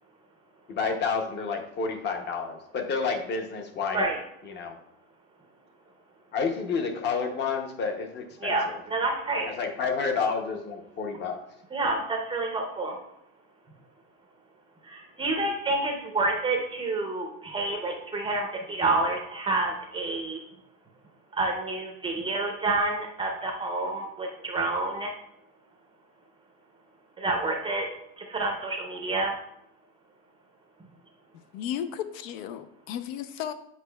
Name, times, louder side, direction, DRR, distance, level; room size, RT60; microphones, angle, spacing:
voice 1, 0.7-4.1 4.4-4.7 6.3-8.6 9.6-11.4, left 5 dB, 30° left, 5 dB, 0.6 m, -29 dB
voice 2, 8.4-9.5 11.7-13.0 14.8-20.4 21.3-25.1 27.2-27.9 28.2-29.3, right 2 dB, 15° right, 1 dB, 0.5 m, -28 dB
voice 3, 31.5-33.5, left 10 dB, 75° left, 11 dB, 0.6 m, -34 dB
8.3 x 5.1 x 2.2 m, 0.77 s
cardioid pair, 155°, 39 cm